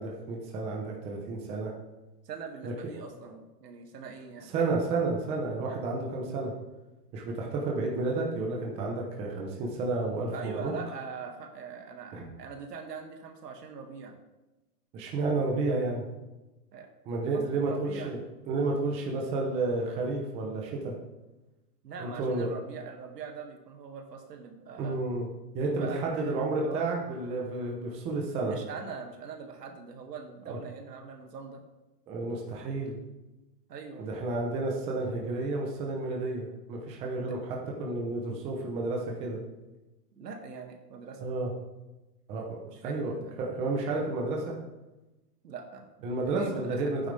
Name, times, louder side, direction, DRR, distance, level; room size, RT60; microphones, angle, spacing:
voice 1, 0.0-1.7 2.6-2.9 3.2-3.3 4.5-6.5 7.1-10.7 12.1-12.3 14.9-16.0 17.1-18.2 18.5-20.9 22.0-22.5 24.8-25.3 25.5-28.6 30.5-30.6 32.1-33.0 34.0-39.4 41.2-41.5 42.3-43.1 43.4-44.6 46.0-47.1, right 3 dB, 15° right, -1 dB, 0.8 m, -31 dB
voice 2, 2.3-4.6 10.3-14.2 16.7-16.9 17.3-18.2 21.8-25.0 25.6-26.8 28.4-31.6 33.7-34.1 37.2-37.3 40.2-41.3 42.7-43.4 45.4-45.9 46.2-47.0, right 5 dB, 75° right, 3 dB, 2.3 m, -42 dB
11.5 x 9.3 x 3.4 m, 1.0 s
hypercardioid pair, 165°, 48 cm